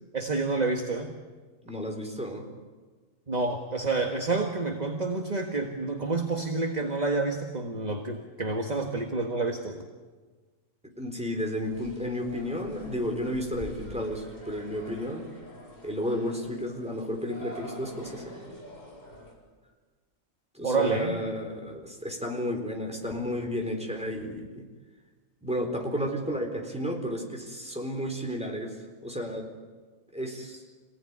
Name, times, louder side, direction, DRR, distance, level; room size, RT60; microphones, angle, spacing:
voice 1, 0.1-1.1 3.3-9.8 20.6-21.2, right 3 dB, 30° right, 3 dB, 1.7 m, -28 dB
voice 2, 1.6-2.5 11.0-15.3 15.8-18.4 20.5-24.6 25.4-28.7 29.0-29.5 30.1-30.6, equal, 5° right, 1 dB, 4.1 m, -32 dB
sound 1, 11.6-19.3, equal, 30° left, 4.6 m, -46 dB
27.0 x 18.0 x 9.7 m, 1.4 s
omnidirectional pair, 1.4 m